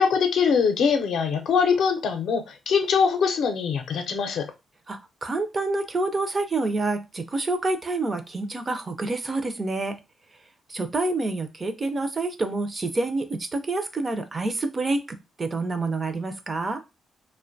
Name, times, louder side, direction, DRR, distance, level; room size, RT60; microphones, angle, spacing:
voice 1, 0.0-4.5, left 6 dB, 75° left, 0.5 m, -22 dB
voice 2, 4.9-10.0 10.7-16.8, right 2 dB, 30° right, 0.4 m, -28 dB
2.5 x 2.1 x 2.5 m
cardioid pair, 125°, 0 cm